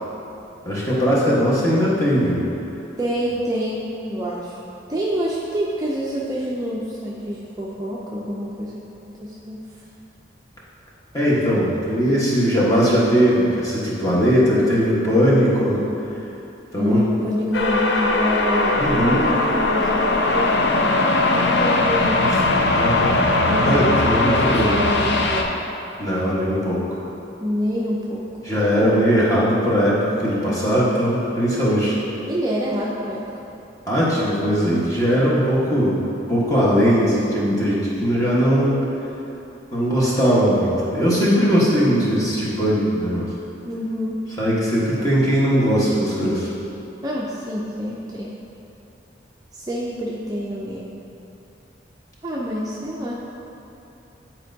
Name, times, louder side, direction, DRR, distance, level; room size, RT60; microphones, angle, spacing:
voice 1, 0.6-2.5 11.1-15.8 16.7-17.1 18.7-19.3 22.3-22.4 22.7-23.2 23.6-24.8 26.0-27.0 28.4-32.0 33.9-36.0 36.3-38.8 39.7-43.3 44.4-46.5, equal, 20° left, -8 dB, 1.2 m, -19 dB
voice 2, 3.0-4.6 4.9-9.6 16.8-22.3 23.5-25.5 27.4-28.3 32.3-33.3 43.6-44.2 47.0-48.3 49.5-51.0 52.2-53.2, equal, 20° right, -5 dB, 0.4 m, -27 dB
sound 1, 17.5-25.4, left 2 dB, 70° left, 0.5 m, -19 dB
9.8 x 4.4 x 2.7 m, 2.9 s
head